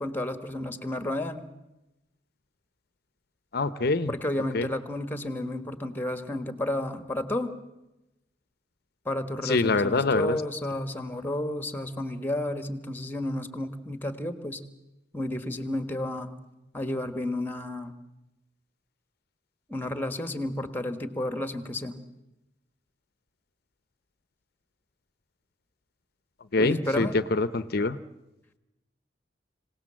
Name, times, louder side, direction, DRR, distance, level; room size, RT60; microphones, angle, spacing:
voice 1, 0.0-1.5 4.1-7.5 9.0-14.6 15.1-16.3 16.7-17.9 19.7-22.0 26.6-27.1, left 1 dB, 10° left, 10 dB, 1.4 m, -31 dB
voice 2, 3.5-4.1 4.5-4.7 9.4-10.4 26.5-28.0, left 3 dB, 55° left, 14 dB, 0.7 m, -25 dB
26.0 x 18.0 x 7.6 m, 0.96 s
head